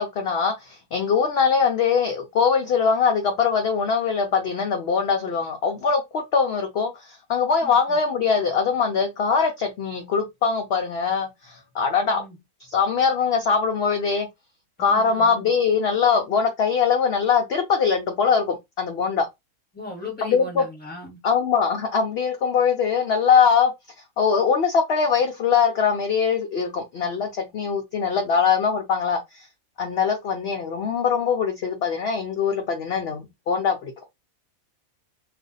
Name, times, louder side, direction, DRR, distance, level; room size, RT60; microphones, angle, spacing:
voice 1, 0.0-12.2 12.6-14.3 14.8-19.3 20.2-20.6 21.2-23.7 24.2-29.5 29.8-33.9, left 6 dB, 60° left, 0.7 m, -22 dB
voice 2, 7.6-8.0 12.1-12.4 14.8-15.5 19.7-21.2, left 2 dB, 5° left, 1.2 m, -38 dB
2.5 x 2.4 x 3.9 m
omnidirectional pair, 1.5 m